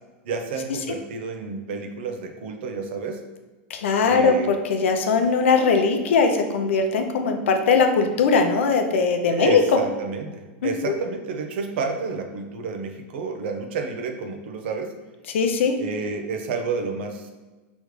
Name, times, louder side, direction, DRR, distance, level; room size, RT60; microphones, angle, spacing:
voice 1, 0.2-3.2 4.0-4.5 9.3-14.9 15.8-17.3, right 4 dB, 60° right, 5 dB, 0.7 m, -30 dB
voice 2, 3.7-9.6 10.9-11.0 15.3-15.7, left 5 dB, 85° left, 5 dB, 0.6 m, -20 dB
5.0 x 3.1 x 3.2 m, 1.2 s
supercardioid pair, 160°, 7 cm